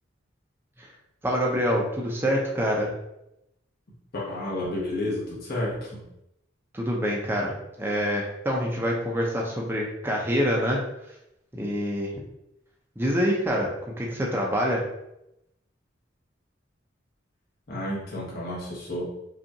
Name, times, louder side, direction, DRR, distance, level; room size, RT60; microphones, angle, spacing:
voice 1, 1.2-2.9 6.7-7.5 7.8-10.8 11.5-12.1 13.0-14.9, equal, 10° right, -2 dB, 0.5 m, -26 dB
voice 2, 4.1-6.0 17.7-19.0, left 1 dB, 50° left, -6 dB, 1.0 m, -31 dB
5.2 x 2.4 x 2.8 m, 0.84 s
head